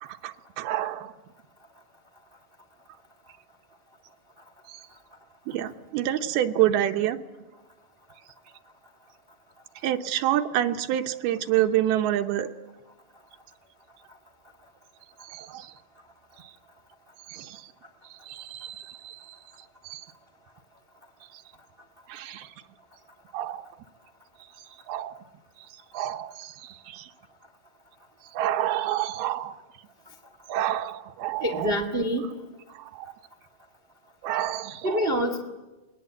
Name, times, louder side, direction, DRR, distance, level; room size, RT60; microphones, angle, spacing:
voice 1, 0.0-1.1 4.7-4.8 5.5-7.2 9.8-12.5 15.2-15.7 16.4-16.5 17.3-17.7 18.2-19.4 19.8-20.1 21.3-21.4 22.1-22.5 23.3-23.6 24.9-25.1 25.9-27.1 28.3-29.6 30.5-31.8 32.7-33.1 34.2-35.1, right 12 dB, 85° right, 6 dB, 2.8 m, -28 dB
voice 2, 31.4-32.3 34.8-35.4, equal, 60° right, 5 dB, 0.5 m, -26 dB
27.0 x 20.0 x 8.0 m, 1.2 s
omnidirectional pair, 4.3 m